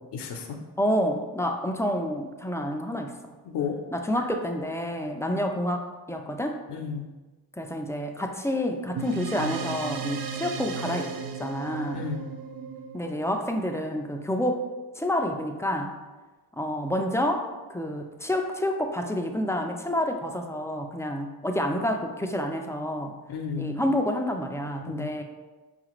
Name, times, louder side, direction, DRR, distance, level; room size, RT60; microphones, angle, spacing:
voice 1, 0.1-0.6 3.4-3.8 5.2-5.4 6.7-7.1 11.9-12.3 23.3-23.9 24.8-25.1, left 6 dB, 75° left, 3 dB, 0.6 m, -33 dB
voice 2, 0.8-3.3 3.9-6.6 7.6-11.1 11.4-12.0 12.9-14.6 15.0-16.0 16.6-23.2 23.6-25.2, equal, 10° left, 3 dB, 0.3 m, -28 dB
sound 1, 9.0-13.8, right 5 dB, 65° right, 0.5 m, -35 dB
4.8 x 2.4 x 3.0 m, 1.2 s
cardioid pair, 55°, 41 cm